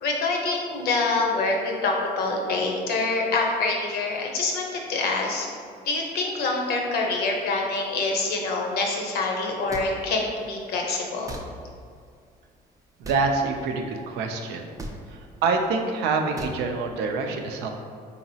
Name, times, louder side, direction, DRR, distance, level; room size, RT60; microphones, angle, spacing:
voice 1, 0.0-5.5 5.8-11.3, left 3 dB, 70° left, 0 dB, 0.7 m, -26 dB
sound 1, 9.7-9.9 11.3-11.4 13.0-13.2 14.8-15.0 16.4-16.6, right 2 dB, 20° right, 0.4 m, -36 dB
voice 2, 13.0-14.7 15.1-17.7, right 4 dB, 90° right, 4 dB, 0.4 m, -26 dB
4.0 x 2.9 x 2.7 m, 2.2 s
cardioid pair, 110°, 17 cm